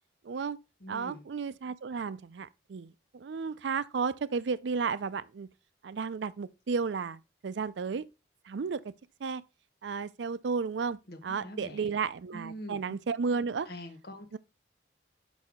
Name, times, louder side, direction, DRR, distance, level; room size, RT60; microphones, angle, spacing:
voice 1, 0.2-0.6 0.9-5.5 5.8-8.0 8.5-8.9 9.2-9.4 9.8-13.7 14.3-14.4, right 5 dB, 85° right, 0.4 m, -33 dB
voice 2, 0.8-1.2 11.1-11.9 12.3-12.9 13.7-14.4, equal, 60° left, 1.1 m, -44 dB
6.2 x 5.5 x 3.6 m
head